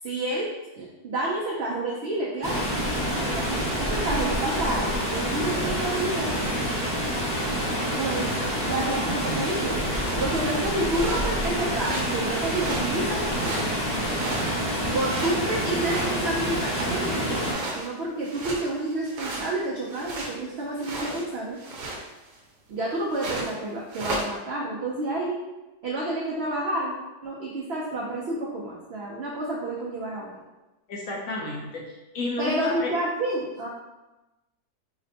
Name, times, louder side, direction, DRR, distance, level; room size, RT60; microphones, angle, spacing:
voice 1, 0.0-2.7 3.1-6.3 8.0-8.3 8.6-9.8 10.2-13.7 14.9-21.6 22.7-25.4 25.8-26.9 27.2-30.3 32.4-33.7, right 2 dB, 70° right, -4 dB, 0.6 m, -29 dB
Water, 2.4-17.5, equal, 10° left, 0.8 m, -27 dB
sound 1, 10.3-10.5 10.8-11.3 11.6-12.2 12.4-12.9 13.3-14.6 14.9-17.1 17.4-20.4 20.8-21.3 21.6-22.4 23.1-23.6 23.9-24.3, right 2 dB, 85° right, 1.2 m, -35 dB
voice 2, 30.9-31.8 32.1-32.9, left 2 dB, 65° left, -2 dB, 0.9 m, -30 dB
5.0 x 2.1 x 2.7 m, 1.1 s
omnidirectional pair, 1.7 m